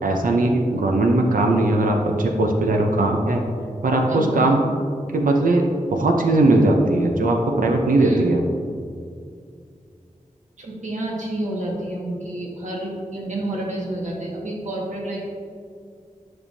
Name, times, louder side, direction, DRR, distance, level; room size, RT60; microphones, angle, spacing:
voice 1, 0.0-3.4 3.8-4.6 5.1-8.4, right 2 dB, 90° right, 2 dB, 0.6 m, -19 dB
voice 2, 4.1-4.6 7.9-8.3 10.6-15.3, right 1 dB, 60° right, -3 dB, 1.7 m, -29 dB
9.8 x 5.4 x 2.7 m, 2.3 s
wide cardioid pair, 55°, 14 cm